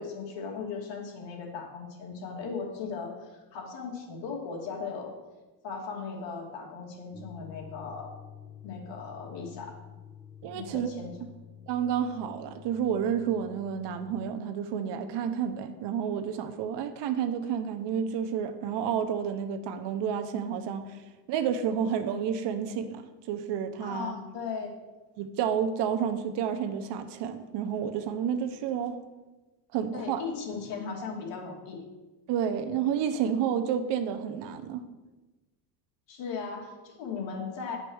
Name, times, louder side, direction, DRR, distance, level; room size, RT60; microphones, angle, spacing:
voice 1, 0.0-5.2 5.6-8.1 8.6-9.8 10.5-11.1 23.8-24.8 29.9-31.8 36.1-37.8, left 5 dB, 60° left, 0 dB, 2.7 m, -37 dB
sound 1, 7.1-14.3, left 8 dB, ahead, 1.4 m, -49 dB
voice 2, 10.4-10.9 11.7-21.0 21.3-23.0 23.3-24.1 25.2-29.0 29.7-30.2 32.3-34.8, right 8 dB, 60° right, 8 dB, 1.0 m, -30 dB
10.5 x 5.3 x 6.3 m, 1.2 s
cardioid pair, 140°, 48 cm